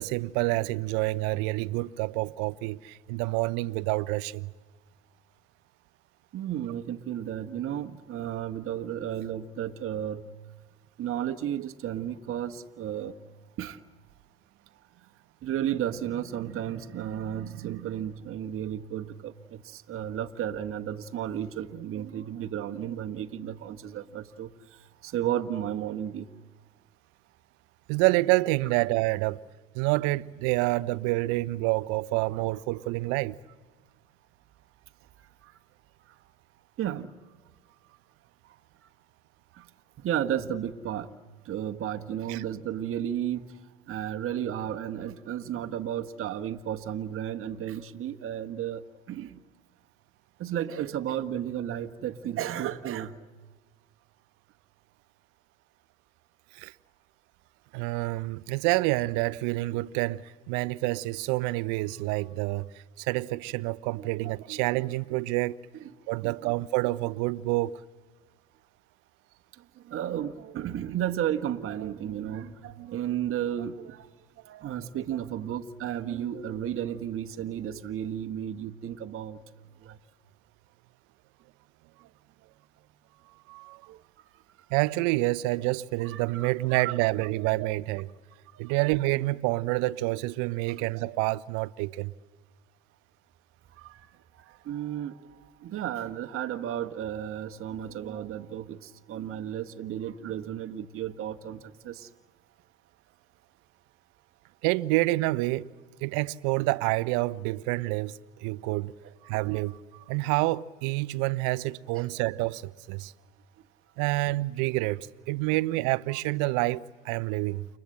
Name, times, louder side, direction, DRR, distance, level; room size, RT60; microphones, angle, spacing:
voice 1, 0.0-4.5 27.9-29.4 29.7-33.4 42.3-42.4 56.5-56.7 57.7-65.6 66.1-67.8 83.5-83.8 84.7-88.1 88.6-92.1 104.6-105.7 106.0-108.9 109.2-113.1 114.0-117.7, right 20 dB, 60° right, 0.8 m, -28 dB
voice 2, 6.3-10.3 11.0-13.1 13.6-13.8 15.4-26.3 35.4-35.5 36.8-37.1 39.5-39.7 40.0-41.1 41.4-43.5 43.9-49.4 50.4-53.2 63.9-64.6 65.7-65.9 66.2-66.5 69.8-74.1 74.4-79.4 79.8-80.0 83.9-84.0 86.0-86.8 88.5-88.6 90.7-90.8 93.8-94.0 94.4-95.3 95.6-102.1 111.9-112.1, right 10 dB, 40° right, 1.3 m, -33 dB
29.5 x 25.5 x 7.8 m
hypercardioid pair, 80°, 34 cm